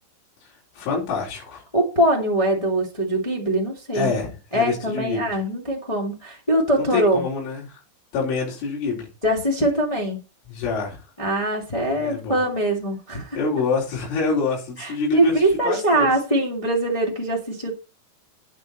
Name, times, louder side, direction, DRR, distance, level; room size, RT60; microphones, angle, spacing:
voice 1, 0.8-1.6 3.9-5.3 6.8-7.8 8.1-9.1 10.5-11.0 12.0-12.4 13.3-15.3 15.6-16.1, left 4 dB, 80° left, 6.6 m, -26 dB
voice 2, 1.7-4.1 4.5-7.2 9.2-10.2 11.2-13.4 14.8-17.8, right 1 dB, 50° left, 0.4 m, -22 dB
9.6 x 9.3 x 4.3 m
omnidirectional pair, 5.5 m